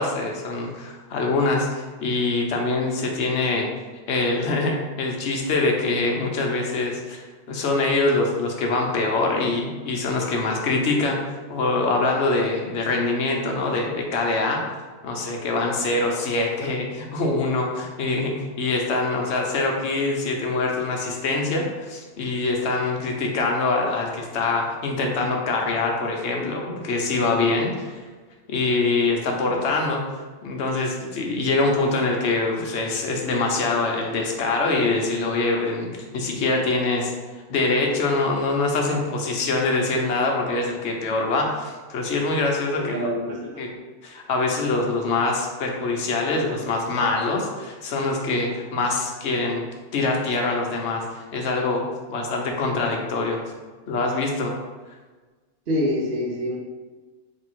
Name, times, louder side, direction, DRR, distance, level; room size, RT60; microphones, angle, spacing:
voice 1, 0.0-3.7 4.1-11.2 11.5-14.7 15.0-28.0 28.5-30.0 30.4-37.1 37.5-43.1 43.6-43.7 44.0-49.6 49.9-51.8 52.1-53.4 53.9-54.5, left 3 dB, 60° left, 1 dB, 0.9 m, -24 dB
voice 2, 42.8-43.7 55.7-56.6, left 1 dB, 50° right, -3 dB, 0.7 m, -26 dB
3.4 x 2.7 x 4.4 m, 1.3 s
omnidirectional pair, 1.4 m